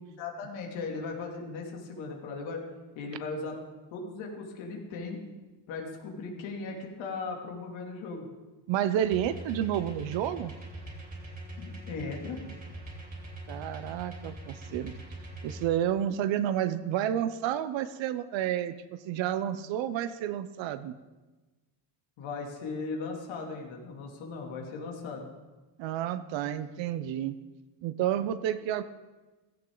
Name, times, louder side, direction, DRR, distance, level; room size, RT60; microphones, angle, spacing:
voice 1, 0.1-2.6 2.9-3.6 3.9-5.2 5.7-8.3 11.6-12.4 22.2-25.3, left 4 dB, 90° left, 0 dB, 2.9 m, -37 dB
voice 2, 8.7-10.5 13.5-14.9 15.4-18.7 19.0-20.9 25.8-27.4 27.8-28.8, right 11 dB, 75° right, 12 dB, 0.8 m, -30 dB
sound 1, 9.0-15.7, right 1 dB, 20° right, 3.0 m, -43 dB
16.0 x 15.0 x 3.9 m, 1.2 s
cardioid pair, 155°, 45 cm